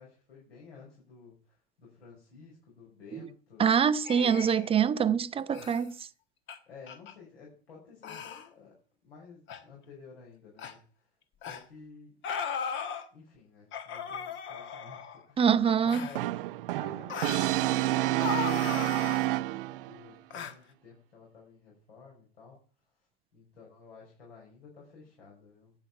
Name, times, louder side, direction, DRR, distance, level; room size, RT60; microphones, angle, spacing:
voice 1, 0.0-3.7 4.3-4.6 6.7-8.7 9.0-11.0 11.4-12.1 13.1-15.4 15.7-16.3 16.7-19.6 19.9-22.6 23.3-25.7, left 5 dB, 70° left, 5.7 m, -52 dB
voice 2, 3.6-6.1 15.4-16.1, right 7 dB, 15° right, 0.7 m, -25 dB
sound 1, 4.0-4.7 5.5-5.8 6.5-6.6 6.9-7.1 8.0-8.5 9.5-9.6 10.6-10.7 11.4-11.6 12.2-13.0 13.7-15.2 15.9-16.2 17.1-17.5 18.2-19.2 20.3-20.5, left 7 dB, 35° left, 1.5 m, -37 dB
Brass instrument, 16.2-20.0, right 16 dB, 55° right, 0.6 m, -29 dB
12.0 x 8.4 x 5.9 m
figure-of-eight pair, 90°, 32 cm